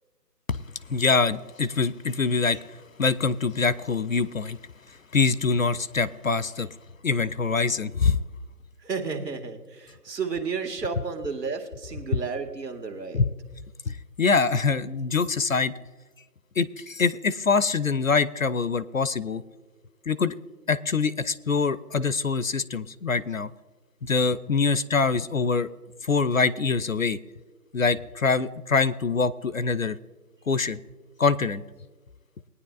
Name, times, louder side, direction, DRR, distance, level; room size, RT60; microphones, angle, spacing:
voice 1, 0.9-4.6 4.9-6.8 7.0-8.2 13.1-13.3 13.9-15.7 16.6-19.4 20.1-20.3 20.7-23.5 24.0-25.7 26.0-27.2 27.7-30.0 30.5-30.8 31.2-31.6, left 4 dB, 55° left, 16 dB, 0.5 m, -24 dB
voice 2, 8.8-13.2, right 5 dB, 80° right, 4 dB, 2.1 m, -32 dB
21.0 x 9.7 x 2.4 m, 1.3 s
figure-of-eight pair, 175°, 48 cm